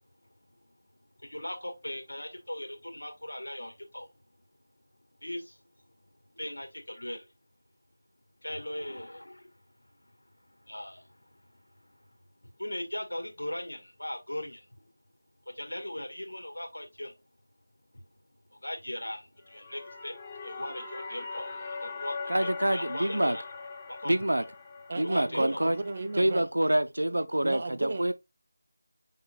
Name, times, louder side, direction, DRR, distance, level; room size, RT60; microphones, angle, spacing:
voice 1, 1.2-4.1 5.2-5.6 6.3-7.2 8.4-9.5 10.6-11.4 11.8-11.9 12.6-14.9 15.4-17.1 17.9-18.0 18.5-20.1 20.4-23.4 23.9-24.2 25.0-25.6, left 1 dB, 90° left, 1.5 m, -39 dB
sound 1, 19.4-26.4, left 4 dB, 15° left, 0.5 m, -41 dB
voice 2, 22.3-23.4 24.0-24.4 25.0-25.8 26.2-28.1, right 1 dB, 85° right, 0.6 m, -26 dB
voice 3, 24.9-26.5 27.4-28.1, right 2 dB, 40° right, 0.5 m, -35 dB
5.5 x 3.6 x 2.2 m
figure-of-eight pair, 170°, 0 cm